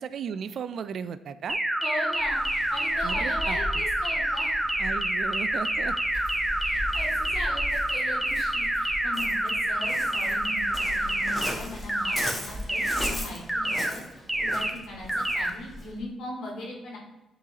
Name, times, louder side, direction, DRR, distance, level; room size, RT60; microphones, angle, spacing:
voice 1, 0.0-1.6 3.0-3.8 4.8-6.0, right 7 dB, 60° right, 13 dB, 0.3 m, -35 dB
sound 1, 1.5-11.5 11.9-12.3 12.7-13.1 13.5-13.9 14.3-14.7 15.1-15.5, right 1 dB, 10° right, 0.6 m, -27 dB
voice 2, 1.8-4.5 6.6-17.0, left 1 dB, 75° left, -3 dB, 1.9 m, -39 dB
Waves surf, 2.1-16.0, left 1 dB, 15° left, 1.2 m, -38 dB
9.0 x 3.9 x 2.8 m, 1.0 s
cardioid pair, 90°, 0 cm